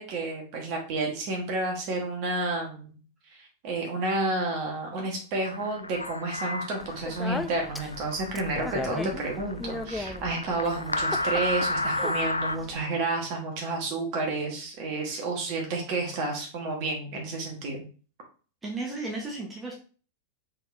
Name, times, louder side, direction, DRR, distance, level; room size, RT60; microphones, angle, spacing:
voice 1, 0.0-2.9 3.4-17.8, right 2 dB, 45° right, 1 dB, 1.5 m, -30 dB
sound 1, 5.4-12.6, left 2 dB, 80° left, 0.3 m, -31 dB
Speech, 6.8-12.8, left 2 dB, 5° left, 0.4 m, -37 dB
voice 2, 18.6-19.7, right 2 dB, 15° right, -2 dB, 1.2 m, -34 dB
4.1 x 4.0 x 2.7 m, 0.39 s
figure-of-eight pair, 90°, 0 cm